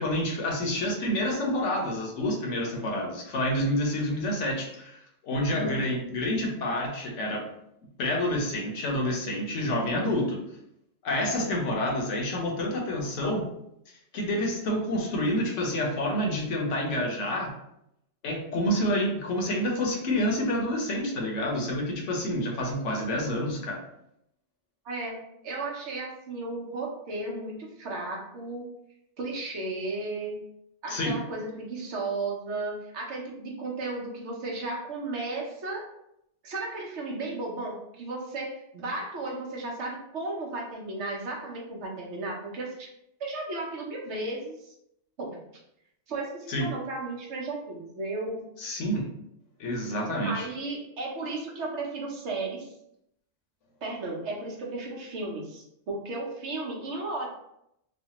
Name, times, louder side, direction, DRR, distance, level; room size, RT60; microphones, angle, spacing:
voice 1, 0.0-5.0 5.2-7.4 8.0-10.4 11.0-13.4 14.1-17.5 18.2-23.8 30.9-31.2 46.5-46.7 48.6-49.0 49.6-50.5, left 1 dB, 80° left, 0 dB, 1.0 m, -28 dB
voice 2, 5.5-5.8 24.8-28.7 29.2-30.3 30.8-35.8 36.4-42.9 43.2-44.7 45.2-45.4 46.1-48.4 50.2-52.7 53.8-57.3, right 2 dB, 70° right, -2 dB, 1.0 m, -34 dB
3.2 x 2.2 x 2.8 m, 0.79 s
omnidirectional pair, 1.2 m